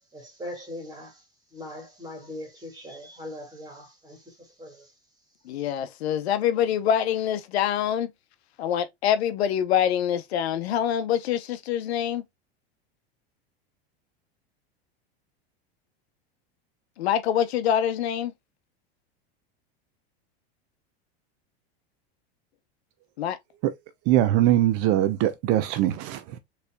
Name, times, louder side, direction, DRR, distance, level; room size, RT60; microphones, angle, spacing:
voice 1, 0.1-1.2 1.5-4.2 4.6-4.9, left 1 dB, 10° right, 2.0 m, -40 dB
voice 2, 5.5-8.1 8.6-12.2 17.0-18.3 23.2-23.4, left 9 dB, 85° left, 0.8 m, -25 dB
voice 3, 24.1-26.4, right 13 dB, 50° right, 0.6 m, -22 dB
4.2 x 3.3 x 2.2 m
supercardioid pair, 125°, 31 cm